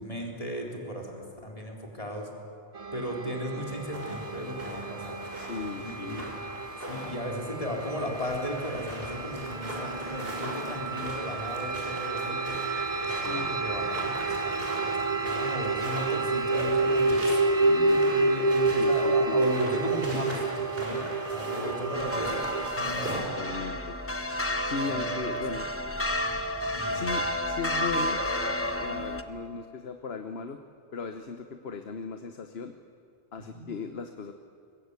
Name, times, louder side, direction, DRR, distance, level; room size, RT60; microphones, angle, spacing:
voice 1, 0.0-2.3 2.9-5.2 5.8-6.2 6.8-12.6 13.0-22.5 22.8-23.3 24.9-25.4 26.7-27.4 33.4-33.7, equal, 35° left, -1 dB, 4.1 m, -36 dB
sound 1, 2.7-22.7, right 3 dB, 40° right, 1.0 m, -29 dB
sound 2, 3.6-23.2, equal, 65° right, 6.4 m, -41 dB
voice 2, 5.3-6.2 13.1-13.5 18.8-19.5 20.1-20.2 23.4-24.0 24.6-25.7 26.9-28.2 28.8-30.6 30.9-32.7 33.3-34.3, left 5 dB, 75° left, 7 dB, 1.3 m, -37 dB
sound 3, 21.9-29.2, equal, 15° left, 1.1 m, -31 dB
25.0 x 22.0 x 8.3 m, 2.4 s
omnidirectional pair, 1.0 m